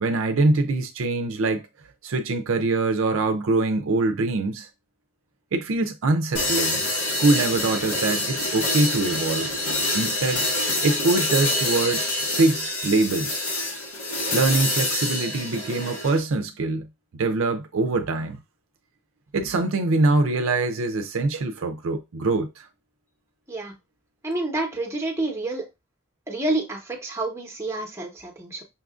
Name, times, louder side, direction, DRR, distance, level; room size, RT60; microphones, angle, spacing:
voice 1, 0.0-1.7 2.0-4.7 5.5-6.9 7.2-9.5 9.9-10.4 10.8-12.1 12.3-13.5 14.3-16.9 17.2-18.4 19.3-22.7, right 3 dB, 70° right, 0.5 m, -23 dB
sound 1, 6.3-16.2, left 2 dB, 85° left, 1.4 m, -26 dB
voice 2, 24.2-25.6 26.3-28.6, right 2 dB, 15° right, 0.9 m, -28 dB
5.6 x 2.4 x 2.4 m
head